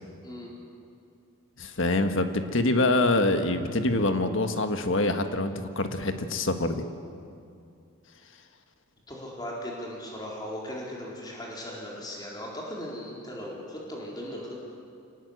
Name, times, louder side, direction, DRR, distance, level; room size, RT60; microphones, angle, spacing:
voice 1, 1.6-6.8, left 2 dB, 60° left, 7 dB, 1.6 m, -25 dB
voice 2, 9.1-14.6, equal, 20° left, -3 dB, 4.3 m, -38 dB
25.5 x 19.0 x 8.2 m, 2.4 s
head